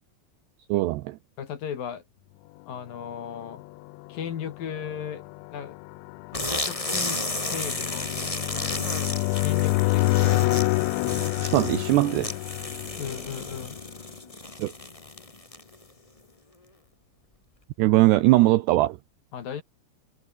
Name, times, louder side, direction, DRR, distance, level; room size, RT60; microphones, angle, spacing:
voice 1, 0.7-1.2 11.4-12.3 14.6-14.7 17.8-19.0, right 18 dB, 85° right, 2.3 m, -20 dB
voice 2, 1.4-2.0 2.7-3.6 4.1-5.2 5.5-5.8 6.5-8.1 9.4-10.6 13.0-13.8 19.3-19.6, left 8 dB, 55° left, 3.1 m, -35 dB
sound 1, 3.2-14.0, left 24 dB, 85° left, 2.6 m, -28 dB
sound 2, 6.3-15.8, left 2 dB, 20° left, 0.9 m, -33 dB
omnidirectional pair, 5.8 m